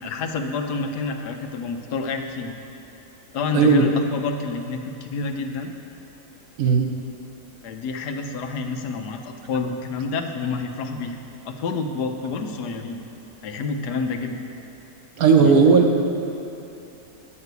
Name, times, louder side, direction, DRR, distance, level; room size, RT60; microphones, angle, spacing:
voice 1, 0.0-2.5 3.3-5.7 7.6-11.2 11.4-13.0 13.4-14.4 15.4-15.5, left 4 dB, 80° left, 5 dB, 1.3 m, -28 dB
voice 2, 6.6-6.9 15.2-16.0, right 5 dB, 65° right, 3 dB, 1.2 m, -15 dB
9.5 x 5.8 x 8.1 m, 2.8 s
omnidirectional pair, 1.7 m